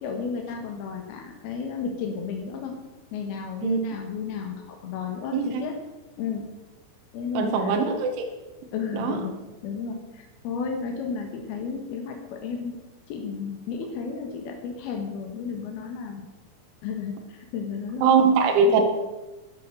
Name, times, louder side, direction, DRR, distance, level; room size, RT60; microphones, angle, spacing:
voice 1, 0.0-2.8 3.1-5.7 6.2-6.4 7.1-7.8 8.7-9.4 9.6-12.8 13.1-16.3 16.8-18.3 18.6-18.8, left 6 dB, 65° left, 2 dB, 2.7 m, -33 dB
voice 2, 7.4-8.1 8.9-9.2 18.0-18.8, right 5 dB, 70° right, 3 dB, 3.6 m, -21 dB
12.5 x 12.0 x 6.5 m, 1.1 s
omnidirectional pair, 5.9 m